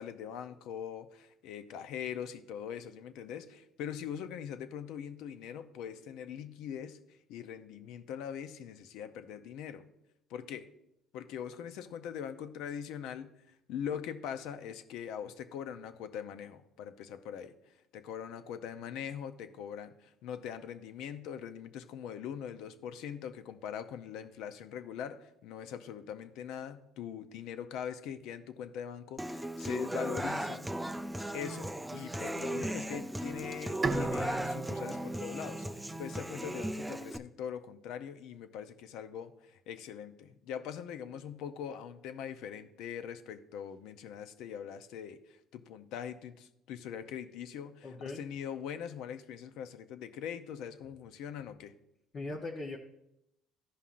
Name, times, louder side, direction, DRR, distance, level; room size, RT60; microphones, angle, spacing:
voice 1, 0.0-7.0 7.3-9.9 10.3-10.7 11.1-17.6 17.9-30.9 31.3-51.7, left 8 dB, 75° left, 11 dB, 0.6 m, -42 dB
Human voice / Acoustic guitar, 29.2-37.2, right 1 dB, 5° right, 0.3 m, -37 dB
Bowed string instrument, 33.8-37.1, right 3 dB, 25° right, 0.8 m, -38 dB
voice 2, 47.8-48.2 52.1-52.8, left 2 dB, 45° left, 0 dB, 0.9 m, -39 dB
13.0 x 5.5 x 2.5 m, 0.81 s
cardioid pair, 110°, 0 cm